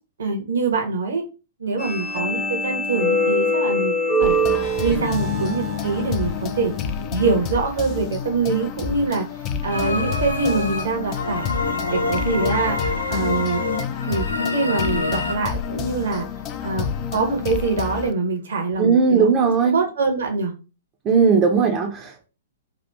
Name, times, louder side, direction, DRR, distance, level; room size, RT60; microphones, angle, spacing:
voice 1, 0.2-1.2 1.6-6.7 7.1-9.3 9.6-11.5 11.9-12.8 13.1-13.6 14.1-16.2 16.6-20.5 21.6-21.8, right 4 dB, 65° right, 3 dB, 0.9 m, -24 dB
sound 1, 1.8-7.1, left 1 dB, 15° left, 0.8 m, -24 dB
sound 2, 4.2-18.1, left 6 dB, 30° left, 0.4 m, -30 dB
sound 3, 9.7-15.3, left 3 dB, 80° left, 0.6 m, -26 dB
voice 2, 18.8-19.8 21.0-22.2, right 5 dB, 25° right, 2 dB, 0.6 m, -18 dB
2.9 x 2.4 x 3.3 m, 0.31 s
figure-of-eight pair, 110°, 0 cm